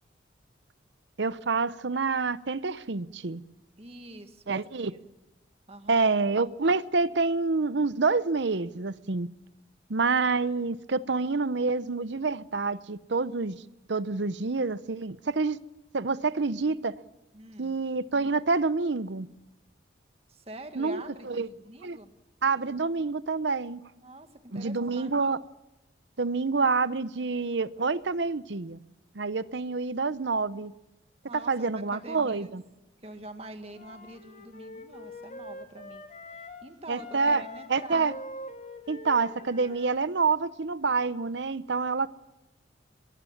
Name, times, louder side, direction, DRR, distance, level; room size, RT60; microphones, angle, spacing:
voice 1, 1.2-3.4 4.5-4.9 5.9-9.3 9.9-13.6 13.9-15.6 15.9-16.9 17.6-19.3 20.8-21.5 21.8-22.0 22.4-23.8 24.5-25.4 26.2-28.8 29.1-30.7 31.3-32.6 36.9-37.4 37.7-38.1 38.9-42.1, right 4 dB, 70° right, 0.8 m, -27 dB
voice 2, 3.8-5.0 5.7-6.1 17.3-17.8 20.3-22.2 24.0-25.1 31.3-32.5 33.0-36.0 36.6-38.1, right 1 dB, 35° right, 1.8 m, -45 dB
Wind instrument woodwind instrument, 33.7-36.7 36.9-40.1, left 1 dB, 40° left, 2.3 m, -44 dB
23.0 x 22.5 x 7.2 m
head